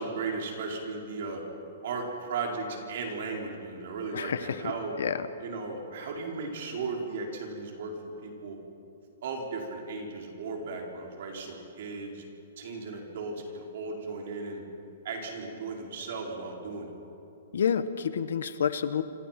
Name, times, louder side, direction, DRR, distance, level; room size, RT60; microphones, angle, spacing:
voice 1, 0.0-1.4 1.8-4.9 5.4-8.6 9.2-12.2 12.6-14.6 15.0-16.9, right 4 dB, 50° right, 1 dB, 4.7 m, -36 dB
voice 2, 4.1-5.3 17.5-19.0, left 7 dB, 75° left, 12 dB, 1.3 m, -29 dB
27.5 x 24.0 x 6.0 m, 2.7 s
hypercardioid pair, 170°, 0 cm